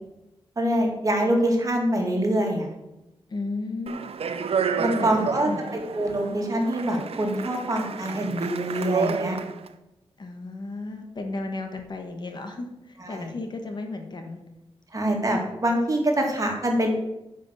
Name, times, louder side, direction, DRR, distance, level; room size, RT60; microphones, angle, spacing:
voice 1, 0.6-2.7 4.8-5.5 5.9-9.4 13.0-13.3 14.9-16.9, right 1 dB, 35° right, 1 dB, 2.2 m, -25 dB
voice 2, 3.3-4.0 4.9-5.7 10.2-14.4, left 3 dB, 45° left, 4 dB, 1.3 m, -34 dB
Speech, 3.9-9.7, right 6 dB, 80° right, 0.6 m, -30 dB
9.1 x 5.2 x 6.9 m, 0.93 s
wide cardioid pair, 120°, 10 cm